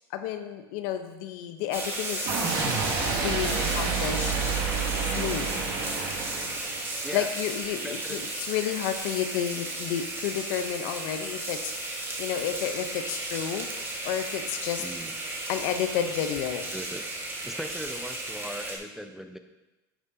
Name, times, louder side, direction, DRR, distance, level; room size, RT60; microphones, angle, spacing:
voice 1, 0.1-2.4 3.0-4.3 5.0-5.6 7.1-13.7 14.0-14.8 15.5-16.7, left 10 dB, 65° left, 8 dB, 0.8 m, -31 dB
sound 1, 1.7-18.8, right 2 dB, 20° right, 1.5 m, -34 dB
sound 2, 2.2-6.9, right 5 dB, 55° right, 2.1 m, -29 dB
voice 2, 7.8-8.2 14.8-15.1 16.7-17.0 17.4-19.4, equal, 5° right, 7 dB, 0.5 m, -38 dB
11.0 x 5.9 x 2.8 m, 1.1 s
supercardioid pair, 100°, 12 cm